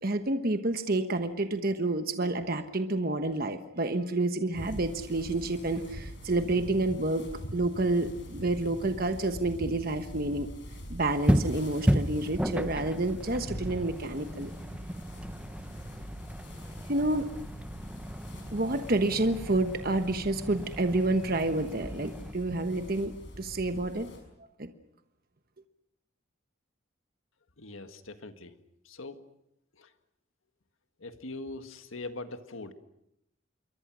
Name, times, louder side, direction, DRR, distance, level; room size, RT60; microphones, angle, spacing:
voice 1, 0.0-7.2 7.5-10.5 10.9-14.5 16.9-17.3 18.5-24.1 24.6-24.7, right 2 dB, 45° right, 8 dB, 1.2 m, -29 dB
sound 1, 4.5-24.2, equal, 60° left, 6.0 m, -44 dB
sound 2, 11.3-22.3, equal, 5° right, 0.8 m, -33 dB
voice 2, 27.6-28.5 28.8-29.2 29.8-29.9 31.0-32.7, left 2 dB, 85° left, 8 dB, 1.8 m, -41 dB
27.5 x 23.0 x 6.2 m, 0.81 s
head